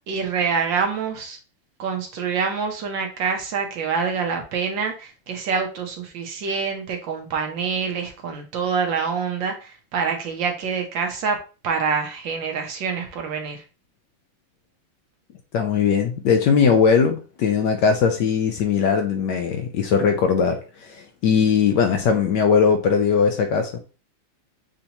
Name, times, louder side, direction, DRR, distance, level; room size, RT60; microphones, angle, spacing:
voice 1, 0.1-1.4 1.8-11.4 11.6-13.6, right 5 dB, 65° right, 3 dB, 1.4 m, -26 dB
voice 2, 15.5-23.8, left 6 dB, 75° left, 5 dB, 1.0 m, -20 dB
6.7 x 2.8 x 2.8 m, 0.34 s
omnidirectional pair, 2.4 m